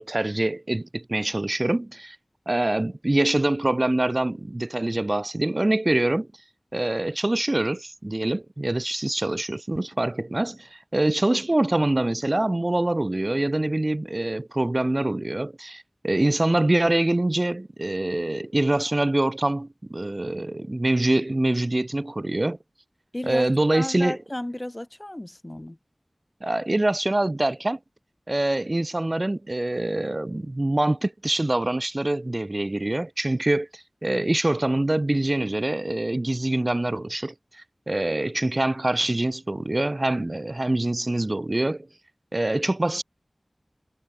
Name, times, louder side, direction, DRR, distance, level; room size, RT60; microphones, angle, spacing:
voice 1, 0.0-2.2 2.5-6.3 6.7-22.6 23.2-24.2 26.4-27.8 28.3-41.9 42.3-43.0, right 1 dB, 40° right, 0.5 m, -25 dB
voice 2, 23.1-25.8, left 1 dB, 25° left, 0.7 m, -33 dB
wide cardioid pair, 50°, 0 cm